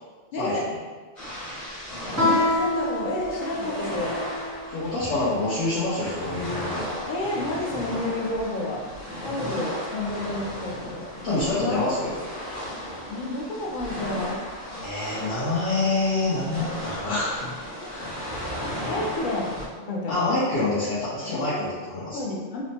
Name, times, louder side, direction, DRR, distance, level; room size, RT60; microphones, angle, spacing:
voice 1, 0.3-0.6 2.1-4.2 7.1-8.8 9.2-11.8 13.1-14.4 18.8-19.5 19.9-20.2 21.4-21.5 22.1-22.6, left 2 dB, 60° left, -2 dB, 0.5 m, -30 dB
sound 1, 1.2-19.7, equal, 40° left, 0.9 m, -35 dB
Guitar, 2.1-4.6, left 2 dB, 25° right, 0.4 m, -26 dB
voice 2, 4.7-6.8 11.2-12.2 14.8-17.4 17.9-18.6 20.1-22.2, left 2 dB, 80° left, -11 dB, 1.1 m, -26 dB
3.0 x 2.0 x 2.7 m, 1.4 s
omnidirectional pair, 1.2 m